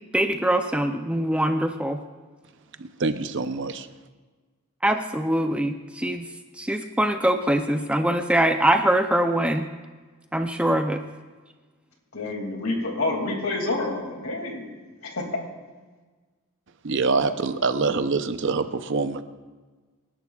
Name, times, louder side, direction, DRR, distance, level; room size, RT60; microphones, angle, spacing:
voice 1, 0.1-2.0 4.8-6.3 6.6-9.7 10.3-11.0, right 1 dB, 5° right, 6 dB, 0.5 m, -23 dB
voice 2, 2.8-3.9 16.8-19.2, right 4 dB, 55° right, 10 dB, 0.7 m, -25 dB
voice 3, 12.1-15.2, left 2 dB, 65° left, 2 dB, 2.5 m, -28 dB
26.5 x 11.5 x 2.4 m, 1.3 s
head